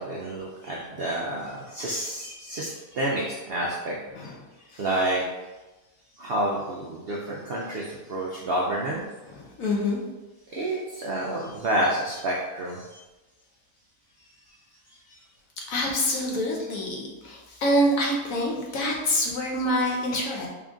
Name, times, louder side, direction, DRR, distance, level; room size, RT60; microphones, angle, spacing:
voice 1, 0.0-3.9 4.8-5.2 6.2-9.0 10.5-12.8, right 1 dB, 80° right, -3 dB, 0.5 m, -29 dB
voice 2, 4.1-4.9 9.2-10.0 10.6-10.8 15.6-20.5, equal, 65° left, -1 dB, 1.1 m, -27 dB
3.7 x 2.5 x 3.6 m, 1.1 s
omnidirectional pair, 1.6 m